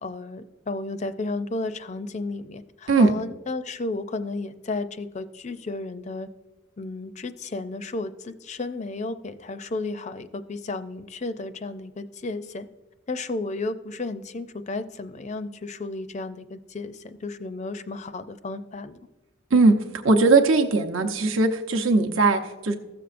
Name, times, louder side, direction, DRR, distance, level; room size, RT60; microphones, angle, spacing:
voice 1, 0.0-6.3 6.8-12.7 13.1-19.0, left 3 dB, 35° left, 11 dB, 0.4 m, -33 dB
voice 2, 20.0-22.8, right 3 dB, 70° right, 3 dB, 0.8 m, -19 dB
16.0 x 6.9 x 2.5 m, 1.2 s
head